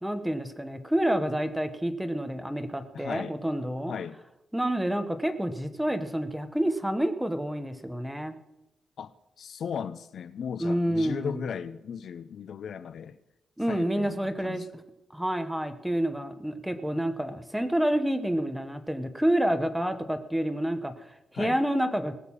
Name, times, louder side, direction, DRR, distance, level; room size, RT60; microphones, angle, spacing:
voice 1, 0.0-3.9 4.5-8.4 10.6-11.4 13.6-14.6 15.1-22.1, right 1 dB, 5° right, 1.0 m, -28 dB
voice 2, 2.9-3.4 3.9-4.2 9.0-9.1 9.4-13.2 13.7-14.6 21.3-21.6, left 7 dB, 60° left, 0.5 m, -36 dB
19.0 x 6.7 x 7.2 m
wide cardioid pair, 170°, 0 cm